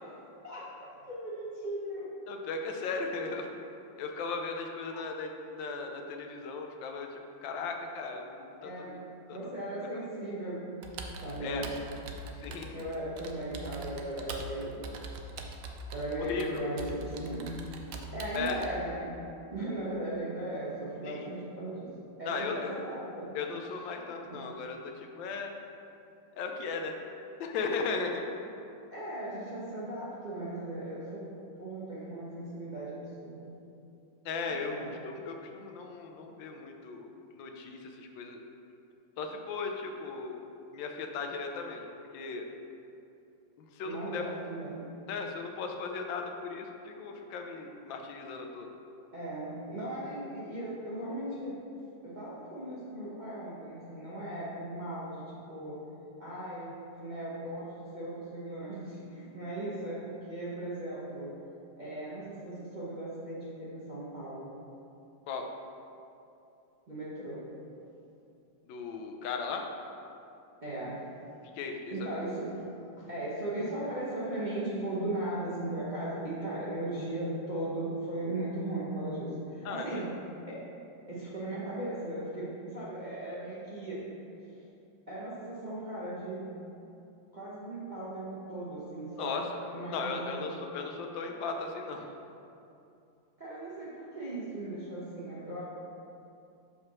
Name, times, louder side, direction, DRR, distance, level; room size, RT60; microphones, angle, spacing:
voice 1, 0.4-2.1 4.9-5.0 8.6-10.8 11.2-11.7 12.7-15.0 15.9-17.7 18.1-19.2 19.5-21.9 22.2-23.4 23.7-23.8 24.2-24.5 28.9-31.3 31.6-33.6 34.5-34.9 43.8-44.9 49.1-51.7 52.0-55.8 56.2-61.3 61.8-64.6 66.9-67.5 70.6-71.1 71.9-72.6 73.0-80.7 81.1-84.1 84.5-84.6 85.1-86.7 87.3-89.4 89.7-90.5 93.4-95.6, right 1 dB, 35° right, -9 dB, 0.8 m, -37 dB
voice 2, 2.3-3.6 4.0-8.7 9.3-9.4 9.9-10.1 11.4-11.7 12.4-12.8 16.2-16.7 18.3-18.6 21.0-21.3 22.2-22.7 23.3-25.5 26.4-27.0 27.4-28.2 34.2-38.4 39.2-41.9 42.1-42.4 43.6-44.2 45.1-48.7 65.3-65.5 68.6-69.6 71.5-72.1 79.6-80.1 89.2-89.6 89.9-92.2, left 4 dB, 85° left, 3 dB, 1.4 m, -37 dB
Computer keyboard, 10.8-18.7, right 2 dB, 75° right, 0.8 m, -43 dB
5.0 x 4.2 x 5.9 m, 2.7 s
omnidirectional pair, 2.0 m